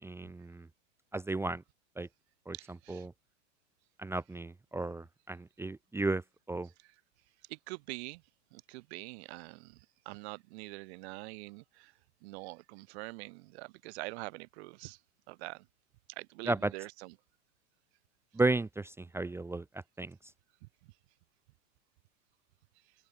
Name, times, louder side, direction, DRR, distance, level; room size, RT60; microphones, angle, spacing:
voice 1, 0.0-0.7 1.1-1.6 2.0-2.1 2.5-2.6 2.9-3.1 4.0-6.2 6.5-6.7 16.5-16.7 18.3-20.2, right 2 dB, 5° right, 0.9 m, -34 dB
voice 2, 2.5-3.1 7.5-8.2 8.5-11.9 12.2-15.0 15.3-15.7 16.1-17.1 20.6-20.7, right 24 dB, 60° right, 7.0 m, -45 dB
open air
hypercardioid pair, 120°, 37 cm